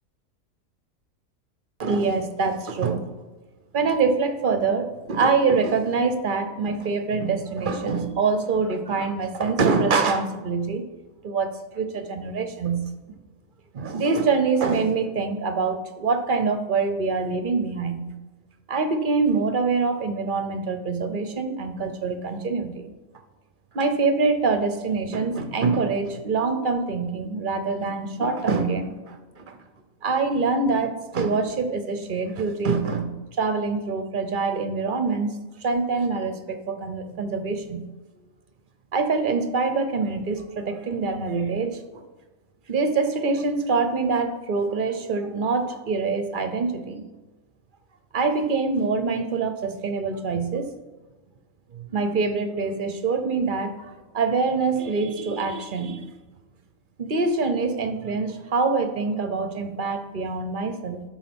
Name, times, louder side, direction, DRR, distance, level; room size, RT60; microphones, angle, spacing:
voice 1, 1.8-3.1 3.7-10.9 11.2-12.9 13.7-18.1 18.7-22.9 23.7-29.6 30.0-35.3 35.6-37.9 38.9-42.0 42.7-47.0 48.1-50.7 51.7-56.1 57.0-61.0, right 4 dB, 45° right, 8 dB, 0.8 m, -25 dB
11.0 x 4.3 x 6.1 m, 1.2 s
omnidirectional pair, 1.4 m